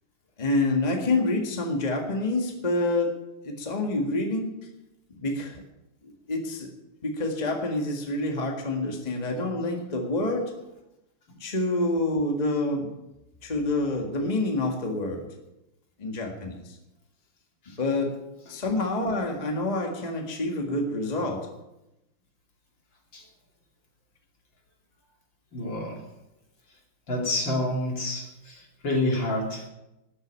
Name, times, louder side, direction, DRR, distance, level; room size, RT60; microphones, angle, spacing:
voice 1, 0.4-4.5 5.1-5.6 6.0-6.7 7.0-10.6 11.4-12.9 13.4-15.3 16.0-16.8 17.7-18.2 18.5-21.5, left 2 dB, 20° left, 2 dB, 1.7 m, -27 dB
voice 2, 25.5-26.0 27.1-29.7, left 1 dB, 60° left, 0 dB, 3.4 m, -28 dB
13.5 x 8.0 x 8.9 m, 0.93 s
omnidirectional pair, 2.3 m